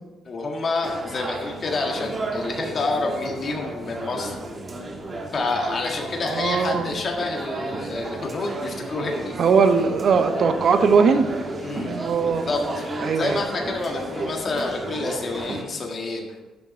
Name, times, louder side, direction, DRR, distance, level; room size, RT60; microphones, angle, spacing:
voice 1, 0.2-4.4 5.3-9.3 11.6-12.0 12.2-16.3, left 3 dB, 45° left, 1 dB, 1.6 m, -28 dB
sound 1, 0.8-15.6, right 2 dB, 35° right, 1.4 m, -33 dB
voice 2, 6.2-6.9 9.4-11.3 11.8-12.4 13.0-13.4, right 5 dB, 60° right, 8 dB, 0.9 m, -20 dB
9.7 x 7.0 x 5.2 m, 1.2 s
cardioid pair, 90°, 0 cm